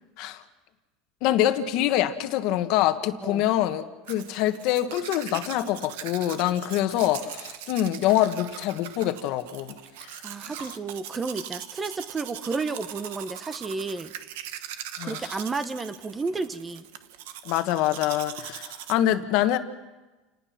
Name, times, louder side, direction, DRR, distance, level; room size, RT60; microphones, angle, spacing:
voice 1, 1.2-9.7 10.0-10.1 15.0-15.4 17.4-19.6, left 12 dB, 60° left, 9 dB, 1.5 m, -25 dB
Domestic sounds home sounds, 4.1-18.9, right 11 dB, 80° right, 1.3 m, -41 dB
voice 2, 10.2-14.1 15.0-16.9, right 4 dB, 15° right, 12 dB, 1.0 m, -32 dB
28.5 x 19.0 x 6.0 m, 1.1 s
supercardioid pair, 140°, 0 cm